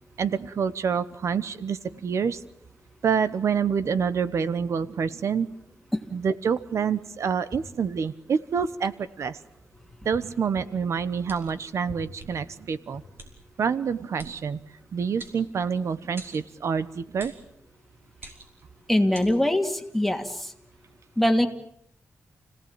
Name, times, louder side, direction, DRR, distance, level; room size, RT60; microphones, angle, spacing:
voice 1, 0.2-2.4 3.0-5.5 6.1-9.4 10.0-13.0 13.6-14.6 14.9-17.3, right 6 dB, 70° right, 14 dB, 1.1 m, -27 dB
sound 1, 11.2-11.7 12.2-12.3 13.2-13.3 14.2-14.3 15.2-15.8 16.2-16.4 17.2-17.4 18.1-18.6 19.1-19.3, right 2 dB, 45° right, 5.8 m, -45 dB
voice 2, 18.9-20.5 21.2-21.5, left 1 dB, 5° left, 5 dB, 2.6 m, -22 dB
29.5 x 17.5 x 8.9 m, 0.73 s
wide cardioid pair, 115°, 5 cm